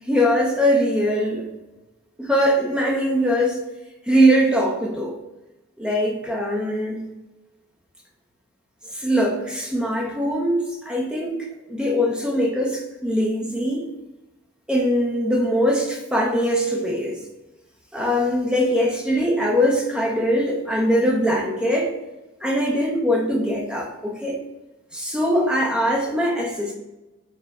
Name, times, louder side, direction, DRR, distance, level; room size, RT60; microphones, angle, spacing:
voice 1, 0.1-1.5 2.2-3.6 4.1-5.2 5.8-7.0 8.9-13.9 14.7-17.2 17.9-21.9 22.4-24.4 24.9-26.7, equal, 5° right, -1 dB, 0.6 m, -21 dB
4.7 x 2.1 x 4.7 m, 1.0 s
head